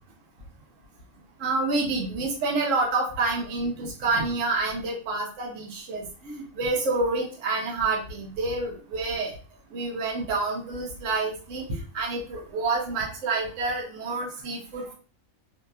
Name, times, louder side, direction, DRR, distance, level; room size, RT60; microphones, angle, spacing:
voice 1, 1.4-9.3 9.7-14.9, right 3 dB, 65° right, -2 dB, 1.1 m, -28 dB
2.8 x 2.7 x 2.3 m, 0.38 s
omnidirectional pair, 1.5 m